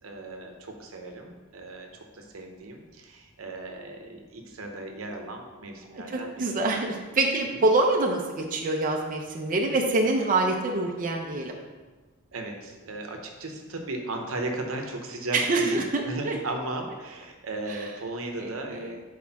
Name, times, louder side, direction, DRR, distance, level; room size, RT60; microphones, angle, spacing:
voice 1, 0.0-6.6 7.5-7.6 12.3-19.0, right 2 dB, 85° right, 3 dB, 0.9 m, -36 dB
voice 2, 5.9-11.6 15.3-16.4 18.4-18.9, right 2 dB, 40° right, 1 dB, 0.6 m, -26 dB
4.6 x 4.3 x 5.8 m, 1.3 s
head